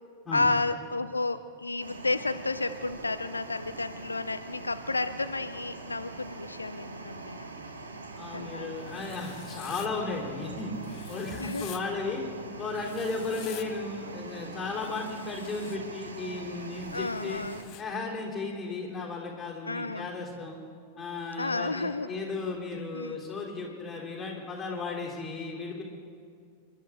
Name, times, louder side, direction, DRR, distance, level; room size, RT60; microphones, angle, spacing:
voice 1, 0.3-7.5 8.3-8.8 11.4-11.8 13.3-13.5 16.9-17.6 19.6-20.1 21.4-22.1 22.9-23.2, left 3 dB, 80° left, 11 dB, 0.4 m, -31 dB
sound 1, 1.8-17.6, right 2 dB, 70° right, 1.6 m, -43 dB
voice 2, 8.2-10.7 11.1-12.2 12.6-17.4 17.8-20.6 21.0-25.8, left 3 dB, 15° left, -3 dB, 3.7 m, -35 dB
Writing, 8.9-9.9 10.8-11.8 12.7-13.7 14.7-15.8 16.8-17.8, left 13 dB, 40° left, 0.8 m, -48 dB
29.0 x 11.5 x 3.6 m, 2.3 s
figure-of-eight pair, 90°, 0 cm